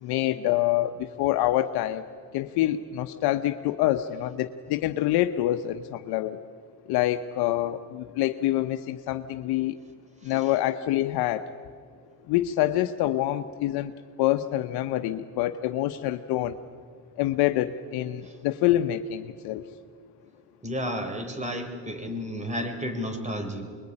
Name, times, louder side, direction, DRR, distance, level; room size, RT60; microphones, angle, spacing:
voice 1, 0.0-2.1 2.3-6.4 6.9-9.8 10.2-11.5 12.3-13.9 14.2-16.6 17.2-19.7, left 14 dB, 80° left, 8 dB, 0.9 m, -26 dB
voice 2, 20.6-23.6, equal, 20° right, 6 dB, 4.5 m, -32 dB
24.5 x 21.5 x 9.8 m, 2.1 s
cardioid pair, 95°, 38 cm